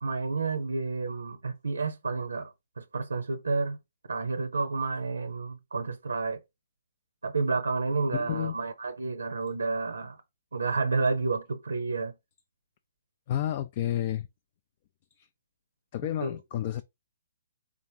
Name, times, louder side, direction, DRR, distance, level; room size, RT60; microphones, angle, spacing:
voice 1, 0.0-3.8 4.1-6.4 7.2-10.2 10.5-12.1 16.2-16.4, right 4 dB, 85° right, 0.6 m, -30 dB
voice 2, 8.1-8.6 13.3-14.3 15.2-15.3 15.9-16.8, left 12 dB, 40° left, 0.3 m, -30 dB
3.8 x 3.5 x 2.8 m
hypercardioid pair, 140°, 0 cm